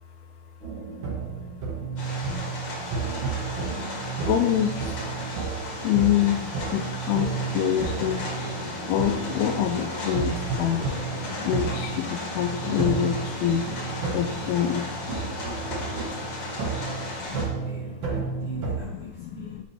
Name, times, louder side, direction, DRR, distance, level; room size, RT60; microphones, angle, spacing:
sound 1, 0.6-18.8, right 5 dB, 85° right, 1.0 m, -32 dB
sound 2, 2.0-17.4, left 2 dB, 45° left, 1.5 m, -35 dB
voice 1, 4.2-5.1 5.8-6.4 6.7-8.3 8.9-13.7 14.1-14.9 17.3-17.4 18.1-18.3 18.6-19.6, left 10 dB, 80° left, 5 dB, 2.3 m, -26 dB
voice 2, 17.4-19.6, right 2 dB, 35° right, -7 dB, 2.5 m, -45 dB
9.5 x 5.9 x 3.2 m, 0.99 s
omnidirectional pair, 4.7 m